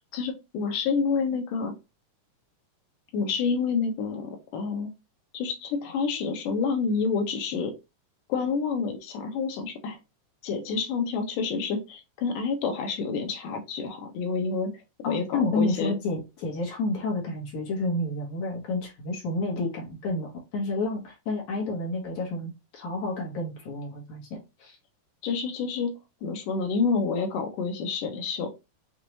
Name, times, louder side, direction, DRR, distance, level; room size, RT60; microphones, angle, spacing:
voice 1, 0.1-1.7 3.1-4.9 5.3-7.7 8.3-10.0 10.4-14.7 15.1-16.0 25.2-25.9 26.2-28.5, left 5 dB, 80° left, 4 dB, 2.6 m, -28 dB
voice 2, 15.0-24.2 24.6-24.8, left 2 dB, 65° left, -2 dB, 2.8 m, -30 dB
6.6 x 2.7 x 3.0 m, 0.26 s
omnidirectional pair, 3.7 m